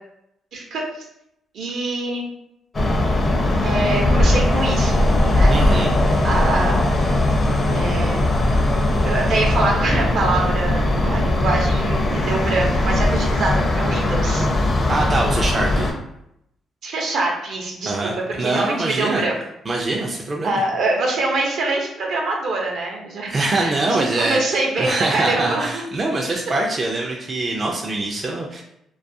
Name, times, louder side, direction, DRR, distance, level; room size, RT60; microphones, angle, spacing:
voice 1, 0.5-0.8 1.5-2.3 3.6-4.9 5.3-5.5 6.2-6.8 7.7-8.3 9.0-14.5 16.8-19.4 20.4-25.8 26.3-26.4, right 2 dB, 70° right, 0 dB, 0.6 m, -24 dB
sound 1, 2.7-15.9, left 1 dB, 35° left, 0.5 m, -19 dB
voice 2, 5.5-5.9 14.9-15.9 17.9-19.2 19.7-20.6 23.3-24.4 24.8-28.6, right 2 dB, 35° right, -1 dB, 0.3 m, -23 dB
2.3 x 2.2 x 2.6 m, 0.78 s
cardioid pair, 90°, 0 cm